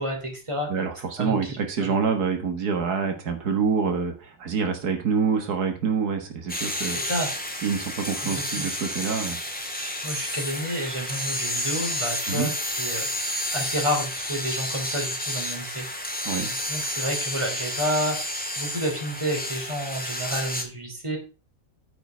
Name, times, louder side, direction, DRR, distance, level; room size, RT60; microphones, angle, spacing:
voice 1, 0.0-0.7 1.2-1.9 6.9-7.3 8.2-8.7 10.0-13.1 13.5-16.2 16.4-18.2 18.6-21.2, equal, 20° right, 1 dB, 3.1 m, -30 dB
voice 2, 0.7-7.0 7.6-9.4 12.3-12.5 16.3-16.5, right 5 dB, 85° right, 5 dB, 2.0 m, -26 dB
sound 1, 6.5-20.6, left 1 dB, 5° left, 1.7 m, -30 dB
9.3 x 5.9 x 5.0 m, 0.33 s
omnidirectional pair, 1.6 m